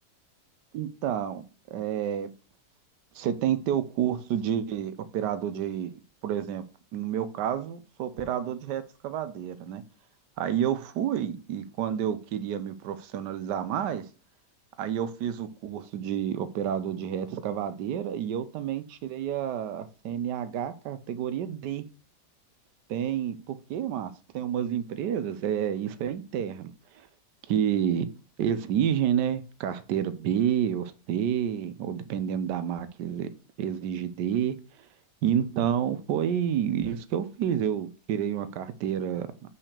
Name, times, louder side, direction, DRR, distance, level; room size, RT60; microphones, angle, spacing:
voice 1, 0.7-2.3 3.1-6.6 6.9-9.8 10.4-14.0 14.8-21.8 22.9-26.7 27.5-28.1 28.4-33.3 33.6-34.5 35.2-39.5, right 9 dB, 85° right, 1.3 m, -29 dB
5.9 x 4.7 x 6.5 m
omnidirectional pair, 1.8 m